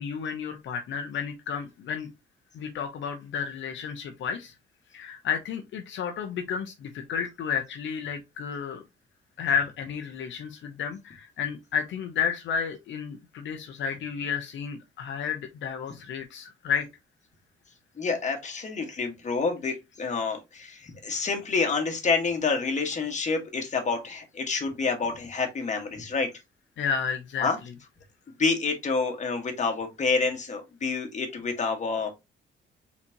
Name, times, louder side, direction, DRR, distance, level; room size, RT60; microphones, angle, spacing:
voice 1, 0.0-2.1 2.5-4.6 4.9-8.8 9.4-16.9 26.8-27.5, left 7 dB, 70° left, 5 dB, 0.8 m, -31 dB
voice 2, 18.0-26.3 27.4-27.6 28.4-32.1, left 4 dB, 35° left, 3 dB, 1.7 m, -28 dB
4.3 x 4.1 x 2.9 m, 0.22 s
cardioid pair, 90°, 20 cm